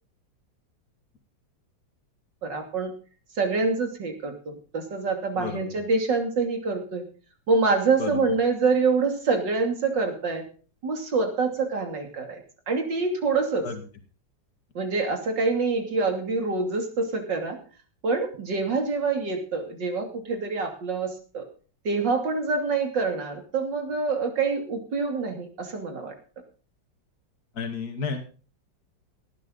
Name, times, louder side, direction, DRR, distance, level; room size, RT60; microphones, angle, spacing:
voice 1, 2.4-2.9 3.4-7.0 7.5-10.4 10.8-12.4 12.7-13.7 14.8-17.6 18.0-21.5 21.9-26.1, right 4 dB, 65° right, 4 dB, 3.5 m, -26 dB
voice 2, 5.3-5.7 8.0-8.2 13.6-13.8 27.5-28.2, left 5 dB, 50° left, 5 dB, 2.7 m, -31 dB
17.5 x 11.5 x 4.0 m, 0.38 s
omnidirectional pair, 2.1 m